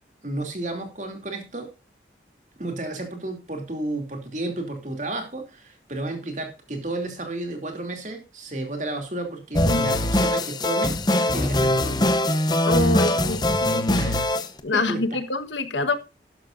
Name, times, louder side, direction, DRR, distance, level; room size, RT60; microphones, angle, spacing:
voice 1, 0.2-1.7 2.6-11.0 11.3-12.1 13.9-14.3 14.7-15.2, right 2 dB, 40° right, 2.8 m, -32 dB
sound 1, 9.5-14.6, left 1 dB, 25° left, 0.8 m, -22 dB
voice 2, 12.6-14.0 14.6-16.0, left 2 dB, 85° left, 1.4 m, -26 dB
12.0 x 12.0 x 2.6 m
head